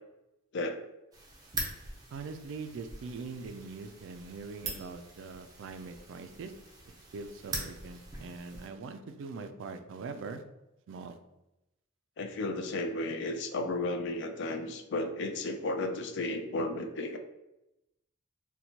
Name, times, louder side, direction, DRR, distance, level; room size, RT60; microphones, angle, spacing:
sound 1, 1.1-8.7, right 2 dB, 20° right, 0.6 m, -43 dB
voice 1, 2.1-6.5 7.1-10.4 10.9-11.2, right 4 dB, 65° right, 8 dB, 0.3 m, -42 dB
voice 2, 12.2-17.2, left 2 dB, 60° left, 6 dB, 0.4 m, -33 dB
4.2 x 2.2 x 2.8 m, 0.93 s
head